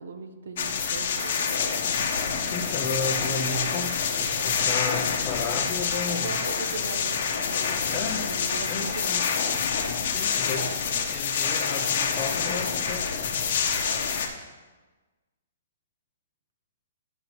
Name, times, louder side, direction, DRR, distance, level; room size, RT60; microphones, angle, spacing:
voice 1, 0.0-1.6 6.1-9.1, right 4 dB, 75° right, 8 dB, 0.8 m, -39 dB
sound 1, 0.6-14.3, left 6 dB, 55° left, 1.0 m, -27 dB
voice 2, 2.4-6.4 7.9-8.3 8.7-9.3 10.0-13.4, left 4 dB, 25° left, 6 dB, 0.6 m, -34 dB
10.5 x 5.5 x 3.1 m, 1.3 s
hypercardioid pair, 160°, 0 cm